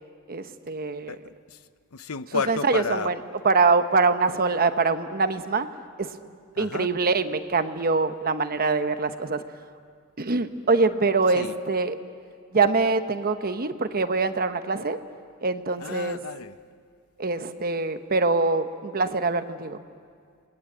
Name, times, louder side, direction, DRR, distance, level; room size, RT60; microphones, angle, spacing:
voice 1, 0.3-1.2 2.5-3.2 3.4-5.7 6.0-6.1 6.6-9.4 10.2-12.0 12.5-15.0 15.4-16.2 17.2-19.8, right 4 dB, 45° right, 9 dB, 1.0 m, -24 dB
voice 2, 1.1-1.6 1.9-3.1 6.6-6.9 11.3-11.5 15.8-16.6, left 5 dB, 90° left, 13 dB, 0.8 m, -32 dB
29.0 x 20.0 x 9.1 m, 2.1 s
head